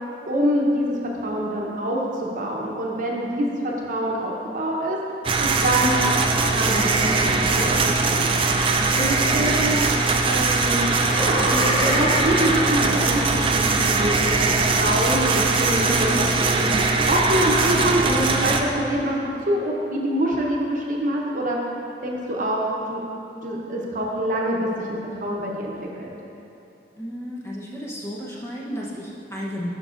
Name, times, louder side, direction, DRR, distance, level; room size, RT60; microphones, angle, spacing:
voice 1, 0.3-1.0 1.2-5.0 5.4-6.0 6.5-8.3 8.9-9.9 10.2-16.1 16.4-19.2 19.5-21.6 22.0-23.0 23.4-26.2, right 1 dB, 50° right, -2 dB, 0.9 m, -25 dB
sound 1, 5.2-18.6, right 3 dB, 30° right, 0.4 m, -21 dB
sound 2, 11.0-14.1, equal, 40° left, 1.3 m, -28 dB
voice 2, 27.0-29.7, equal, 15° left, -5 dB, 0.8 m, -33 dB
12.0 x 5.4 x 2.5 m, 2.8 s
head